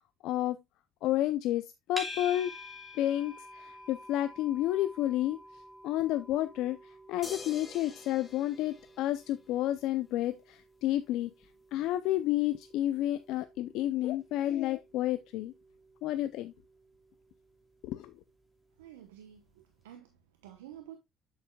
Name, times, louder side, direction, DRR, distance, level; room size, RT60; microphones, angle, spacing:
voice 1, 0.2-0.6 1.0-2.5 3.0-5.4 5.8-6.8 7.1-11.3 11.7-15.5 16.0-16.5 17.8-18.1, left 13 dB, 70° left, 0.5 m, -30 dB
sound 1, 2.0-19.2, left 1 dB, 5° left, 2.8 m, -50 dB
sound 2, 7.2-9.7 11.4-11.5, left 4 dB, 30° left, 2.0 m, -48 dB
voice 2, 18.8-21.0, right 11 dB, 90° right, 0.9 m, -51 dB
8.5 x 7.1 x 2.3 m
hypercardioid pair, 65°, 0 cm